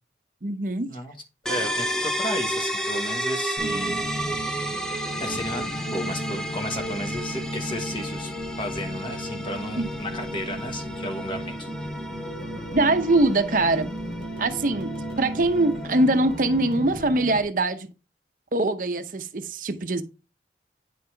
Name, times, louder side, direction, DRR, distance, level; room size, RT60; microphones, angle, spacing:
voice 1, 0.4-1.0 3.6-4.0 9.8-9.9 12.7-13.9 14.4-17.9 18.5-20.0, right 2 dB, 50° right, 0.7 m, -23 dB
voice 2, 1.5-8.3 8.6-11.7, left 1 dB, 30° left, 1.4 m, -34 dB
sound 1, 1.5-17.0, equal, 5° left, 0.6 m, -33 dB
sound 2, 3.6-17.4, equal, 70° left, 2.8 m, -35 dB
9.3 x 5.4 x 3.3 m
head